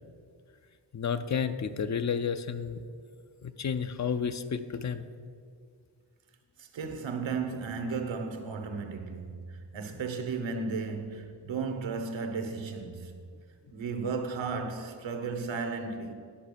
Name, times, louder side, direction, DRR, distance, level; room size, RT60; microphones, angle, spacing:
voice 1, 0.9-2.8 3.4-5.0, left 6 dB, 40° left, 0.5 m, -31 dB
voice 2, 6.6-13.1 13.7-16.1, right 4 dB, 90° right, 1.1 m, -34 dB
10.0 x 5.8 x 6.7 m
wide cardioid pair, 135°, 44 cm